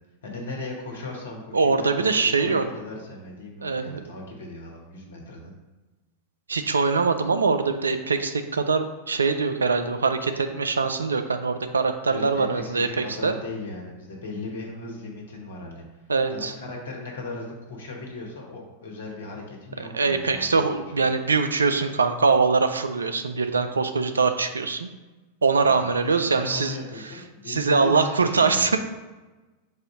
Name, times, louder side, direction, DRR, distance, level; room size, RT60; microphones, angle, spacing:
voice 1, 0.2-5.5 12.1-15.8 16.3-20.6 21.0-21.1 25.6-25.8 26.0-28.7, left 2 dB, 65° left, 0 dB, 1.1 m, -37 dB
voice 2, 1.5-2.6 3.6-4.0 6.5-13.3 16.1-16.5 19.9-24.9 25.4-26.8 27.5-28.8, right 4 dB, 75° right, 8 dB, 0.3 m, -23 dB
4.1 x 2.6 x 4.8 m, 1.1 s
figure-of-eight pair, 90°, 0 cm